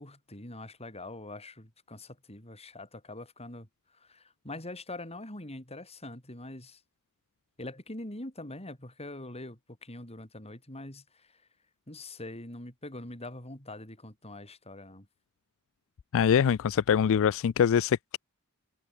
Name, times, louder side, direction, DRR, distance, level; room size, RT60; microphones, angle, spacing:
voice 1, 0.0-3.7 3.9-6.8 7.6-11.4 11.9-15.1, left 2 dB, 30° left, 6.2 m, -43 dB
voice 2, 16.1-18.2, left 8 dB, 65° left, 0.4 m, -24 dB
head